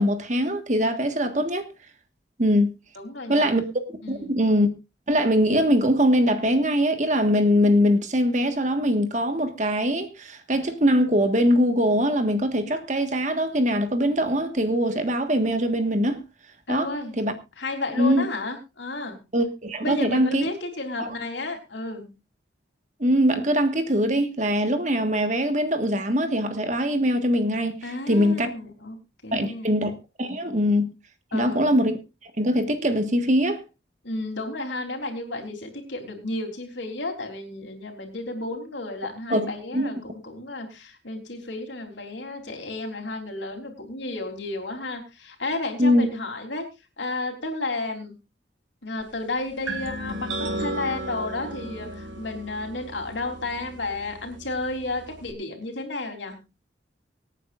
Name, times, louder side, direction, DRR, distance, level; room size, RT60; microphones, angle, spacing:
voice 1, 0.0-1.7 2.4-2.7 3.3-3.7 4.1-4.7 5.1-16.2 16.7-16.9 17.2-17.3 18.0-18.3 19.3-20.4 21.0-21.1 23.0-27.8 28.1-28.5 29.3-29.9 30.2-30.9 31.3-32.0 32.2-33.6 39.3-39.5 39.7-39.9 45.8-46.1, equal, 40° right, 1.6 m, -22 dB
voice 2, 3.0-3.5 4.0-4.5 16.7-17.1 17.6-19.2 19.8-22.1 27.8-29.8 31.3-31.7 34.0-46.7 47.0-48.1 48.8-56.4, left 2 dB, 75° left, 3.6 m, -32 dB
sound 1, 49.7-55.3, right 1 dB, 85° right, 1.8 m, -35 dB
24.5 x 9.2 x 2.5 m
head